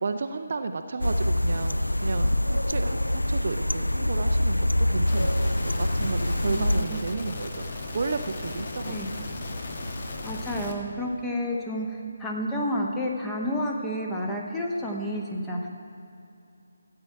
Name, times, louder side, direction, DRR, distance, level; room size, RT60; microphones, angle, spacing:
voice 1, 0.0-9.3, right 4 dB, 45° right, 7 dB, 0.5 m, -33 dB
sound 1, 1.0-6.8, left 1 dB, 80° left, 0.3 m, -25 dB
sound 2, 5.1-10.7, left 2 dB, 40° left, 1.2 m, -35 dB
voice 2, 6.5-7.0 8.8-9.1 10.2-15.7, equal, 5° left, -2 dB, 1.0 m, -30 dB
15.0 x 7.9 x 4.6 m, 2.6 s
figure-of-eight pair, 150°, 0 cm